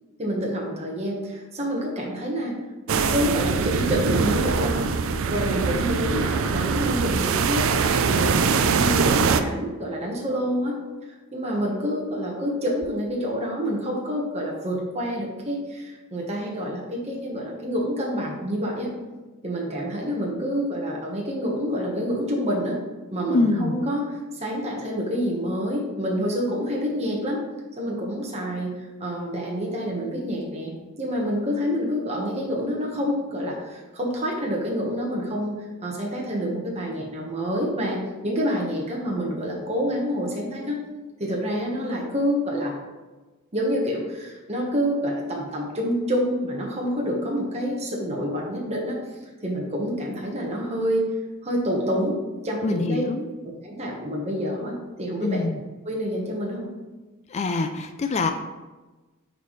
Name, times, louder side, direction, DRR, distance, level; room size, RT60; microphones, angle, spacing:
voice 1, 0.2-2.6 2.9-4.9 5.3-10.8 11.3-18.9 19.4-22.8 23.1-24.0 24.3-27.4 27.8-28.7 29.0-40.8 41.2-42.7 43.5-49.0 49.4-51.0 51.4-52.2 52.4-53.0 53.6-55.4 55.8-56.7, equal, 30° right, -2 dB, 1.3 m, -27 dB
sound 1, 2.9-9.4, right 5 dB, 60° right, 0.4 m, -23 dB
voice 2, 23.3-23.8 52.6-53.3 55.2-55.6 57.3-58.3, left 3 dB, 30° left, 7 dB, 0.3 m, -25 dB
9.4 x 4.1 x 3.2 m, 1.2 s
head